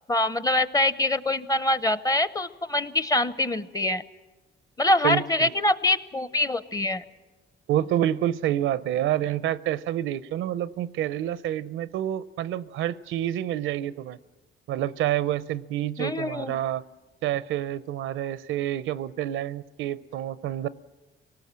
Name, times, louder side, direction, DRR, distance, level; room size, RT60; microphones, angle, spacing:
voice 1, 0.1-4.0 4.8-7.0 16.0-16.6, left 1 dB, 20° left, 15 dB, 0.7 m, -24 dB
voice 2, 5.0-5.5 7.7-14.2 14.7-16.8 17.2-20.7, right 12 dB, 85° right, 17 dB, 0.6 m, -28 dB
24.0 x 18.5 x 7.5 m, 1.2 s
cardioid pair, 90°, 20 cm